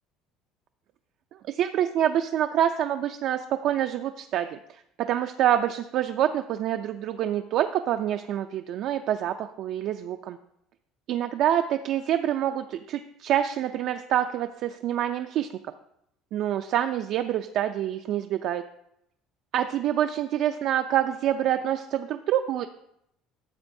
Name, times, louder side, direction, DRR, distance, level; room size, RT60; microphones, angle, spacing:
voice 1, 1.5-10.4 11.1-15.5 16.3-18.6 19.5-22.7, right 11 dB, 50° right, 7 dB, 0.3 m, -26 dB
13.0 x 7.4 x 2.6 m, 0.77 s
cardioid pair, 165°, 0 cm